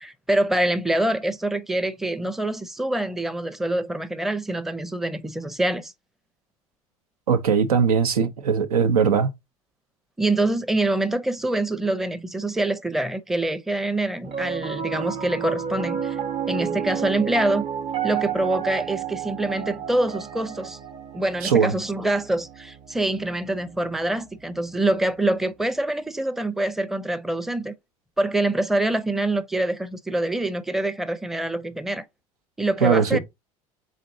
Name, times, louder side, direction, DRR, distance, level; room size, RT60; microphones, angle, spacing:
voice 1, 0.0-5.9 10.2-16.2 16.5-17.6 18.0-20.8 21.1-27.7 28.2-32.0 32.6-33.2, right 1 dB, ahead, 0.6 m, -25 dB
voice 2, 7.3-9.3 21.4-21.7 32.8-33.2, right 6 dB, 85° right, 0.7 m, -20 dB
Piano, 14.2-24.6, right 8 dB, 35° right, 0.7 m, -31 dB
5.1 x 3.8 x 2.6 m
hypercardioid pair, 80°, 18 cm